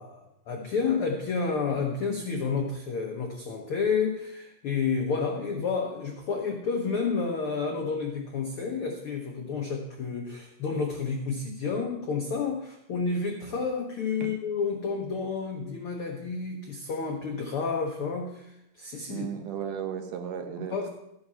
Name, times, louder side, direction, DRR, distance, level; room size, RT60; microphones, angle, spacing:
voice 1, 0.0-19.3 20.6-20.9, left 5 dB, 75° left, 2 dB, 1.2 m, -30 dB
voice 2, 19.1-20.9, right 8 dB, 70° right, 5 dB, 2.4 m, -35 dB
13.5 x 7.9 x 5.6 m, 0.81 s
omnidirectional pair, 4.1 m